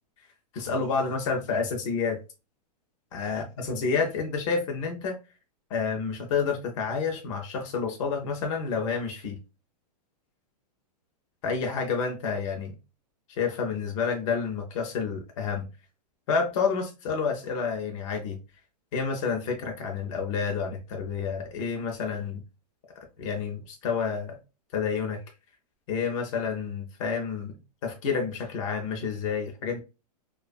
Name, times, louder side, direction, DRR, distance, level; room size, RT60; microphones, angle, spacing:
voice 1, 0.5-2.2 3.1-5.2 5.7-9.4 11.4-12.7 13.3-15.7 16.3-18.4 18.9-22.4 23.2-24.4 24.7-25.2 25.9-27.5 27.8-29.8, left 5 dB, 50° left, 0.7 m, -29 dB
2.5 x 2.4 x 2.2 m
hypercardioid pair, 145°, 21 cm